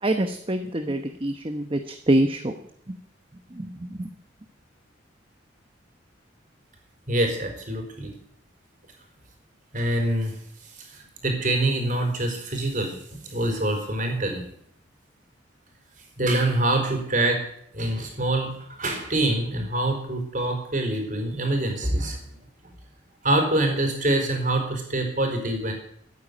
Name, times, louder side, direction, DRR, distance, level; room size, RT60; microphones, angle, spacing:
voice 1, 0.0-2.6 2.9-3.0 3.5-4.1, right 1 dB, 30° right, 7 dB, 0.9 m, -25 dB
voice 2, 7.1-8.1 9.7-10.4 10.9-14.4 16.2-17.4 17.7-22.2 22.6-22.7 23.2-25.7, right 1 dB, 45° right, 3 dB, 4.4 m, -25 dB
14.0 x 9.5 x 9.5 m, 0.69 s
head